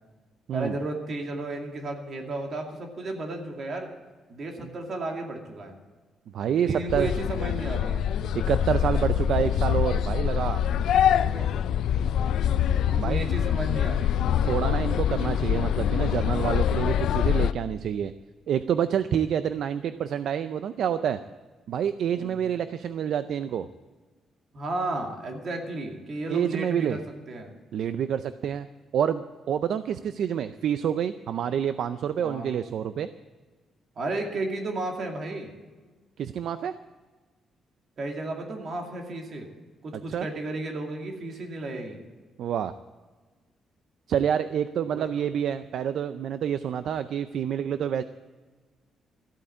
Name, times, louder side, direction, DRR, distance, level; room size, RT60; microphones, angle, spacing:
voice 1, 0.5-3.9 4.3-5.7 6.6-8.0 11.1-11.6 12.9-14.2 22.1-22.4 24.5-27.0 27.3-27.5 32.2-32.5 34.0-35.5 38.0-39.5 39.8-42.0 44.9-45.1, right 2 dB, 40° right, 2 dB, 2.3 m, -33 dB
voice 2, 6.3-7.1 8.3-10.6 13.0-13.3 14.5-18.1 18.5-21.2 21.7-23.7 26.3-27.0 27.7-28.7 28.9-33.1 36.2-36.7 40.1-40.3 42.4-42.7 44.1-48.0, right 9 dB, 60° right, 12 dB, 0.4 m, -28 dB
sound 1, 6.9-17.5, left 9 dB, 70° left, 0.4 m, -24 dB
14.5 x 8.7 x 8.3 m, 1.3 s
cardioid pair, 165°, 0 cm